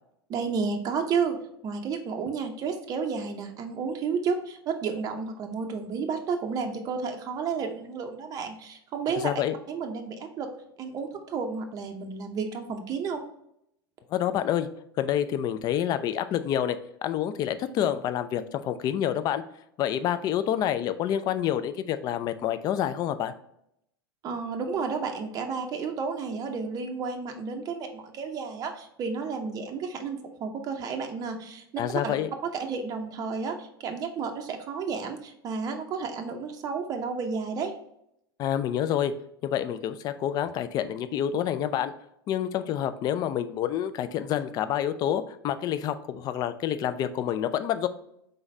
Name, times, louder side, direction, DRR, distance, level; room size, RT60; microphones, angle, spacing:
voice 1, 0.3-1.4 1.6-9.3 9.7-10.5 10.8-13.2 24.2-31.6 31.9-32.1 32.4-37.7, right 5 dB, 30° right, 4 dB, 0.6 m, -31 dB
voice 2, 9.2-9.5 14.1-14.7 15.0-16.8 17.0-19.4 19.8-23.3 31.8-32.3 38.4-39.1 39.4-41.9 42.3-47.9, left 10 dB, 30° left, 11 dB, 0.4 m, -28 dB
3.9 x 3.8 x 3.2 m, 0.75 s
figure-of-eight pair, 85°, 13 cm